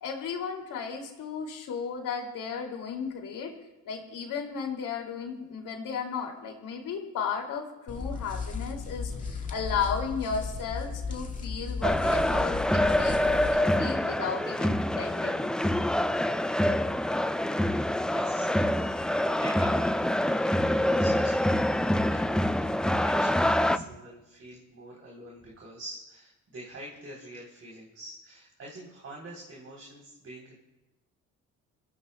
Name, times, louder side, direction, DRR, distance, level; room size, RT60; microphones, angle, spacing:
voice 1, 0.0-3.5 3.8-13.2 13.5-15.5, left 6 dB, 70° left, 1 dB, 2.8 m, -34 dB
sound 1, 7.9-13.6, left 5 dB, 25° left, 2.0 m, -35 dB
sound 2, 11.8-23.8, left 1 dB, ahead, 0.4 m, -26 dB
voice 2, 18.1-18.5 18.9-21.5 21.8-30.5, right 1 dB, 45° right, -3 dB, 3.6 m, -46 dB
25.0 x 15.5 x 2.3 m, 1.0 s
cardioid pair, 95°, 33 cm